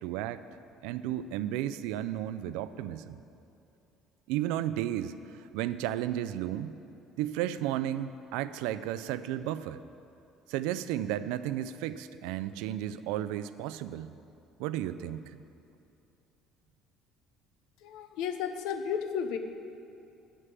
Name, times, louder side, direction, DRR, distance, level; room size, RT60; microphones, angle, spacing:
voice 1, 0.0-0.4 0.8-3.2 4.3-6.8 7.2-9.8 10.5-14.2 14.6-15.4, right 12 dB, 85° right, 13 dB, 0.3 m, -33 dB
voice 2, 17.8-19.4, left 7 dB, 80° left, 8 dB, 0.6 m, -33 dB
7.3 x 6.5 x 7.6 m, 2.7 s
cardioid pair, 100°, 0 cm